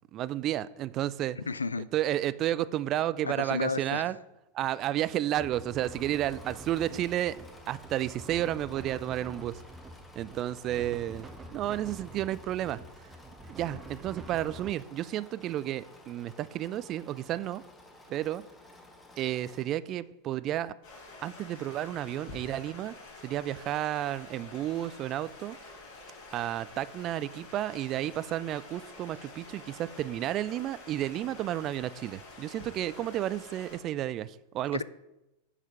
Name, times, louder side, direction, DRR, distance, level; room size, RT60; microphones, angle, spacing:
voice 1, 0.1-1.5 1.9-4.2 4.5-7.4 7.7-9.6 10.2-13.1 13.5-17.6 18.1-18.4 19.2-20.8 21.2-22.9 23.2-25.6 26.3-34.8, right 13 dB, 35° right, 0.3 m, -32 dB
voice 2, 1.4-1.9 3.2-4.1 34.7-34.8, left 4 dB, 75° left, 0.3 m, -32 dB
sound 1, 5.3-14.7, right 1 dB, 15° right, 0.8 m, -47 dB
Engine / Mechanisms, 5.6-19.9, left 2 dB, 10° left, 1.3 m, -54 dB
Stream, 20.8-33.8, left 3 dB, 50° left, 3.6 m, -48 dB
7.4 x 6.6 x 5.5 m
figure-of-eight pair, 90°, 0 cm